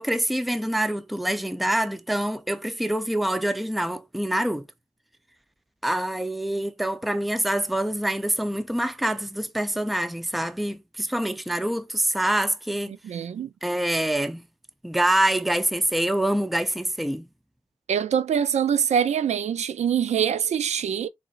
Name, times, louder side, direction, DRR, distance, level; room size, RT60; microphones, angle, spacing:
voice 1, 0.0-4.7 5.8-12.9 13.6-14.4 14.8-17.3, right 1 dB, ahead, 0.5 m, -25 dB
voice 2, 13.0-13.5 17.9-21.1, right 8 dB, 85° right, 0.4 m, -24 dB
4.0 x 3.8 x 2.4 m
cardioid pair, 70°, 11 cm